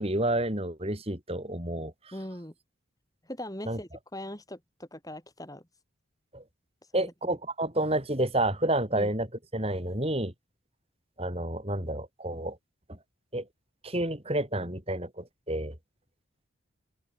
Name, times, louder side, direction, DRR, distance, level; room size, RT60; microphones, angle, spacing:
voice 1, 0.0-1.9 3.7-3.8 6.3-6.4 6.9-9.3 9.5-10.3 11.2-12.6 12.9-13.0 13.3-13.4 13.8-15.8, right 1 dB, 30° right, 4.5 m, -29 dB
voice 2, 2.1-2.5 3.2-5.6 6.9-7.4 8.9-9.1, left 1 dB, 15° left, 5.7 m, -40 dB
head